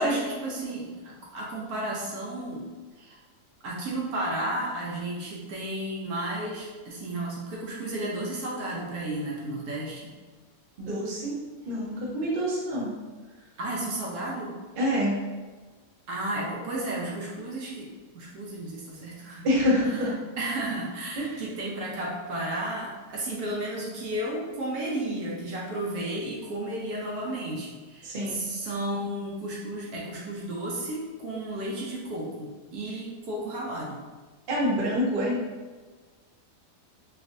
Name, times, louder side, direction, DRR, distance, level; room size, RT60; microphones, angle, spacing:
voice 1, 0.0-2.6 3.0-3.2 3.6-10.1 13.6-14.5 16.1-19.5 20.4-34.0, right 1 dB, 70° right, -3 dB, 1.0 m, -33 dB
voice 2, 10.8-11.4 11.7-12.9 14.8-15.2 19.4-20.1 21.2-21.4 28.0-28.4 34.5-35.4, equal, 50° right, -5 dB, 0.7 m, -26 dB
3.1 x 2.5 x 2.5 m, 1.3 s
omnidirectional pair, 1.8 m